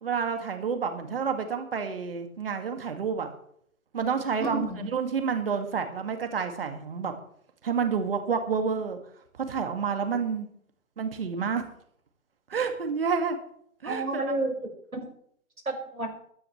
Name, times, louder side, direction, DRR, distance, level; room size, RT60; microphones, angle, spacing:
voice 1, 0.0-3.3 3.9-7.1 7.6-9.0 9.4-10.5 11.0-11.6 12.5-13.4 13.8-14.2, right 6 dB, 40° right, 6 dB, 2.3 m, -29 dB
voice 2, 4.4-4.9 13.8-15.1 15.7-16.2, right 2 dB, 75° right, 0 dB, 6.0 m, -31 dB
21.5 x 9.7 x 3.3 m, 0.66 s
figure-of-eight pair, 140°, 42 cm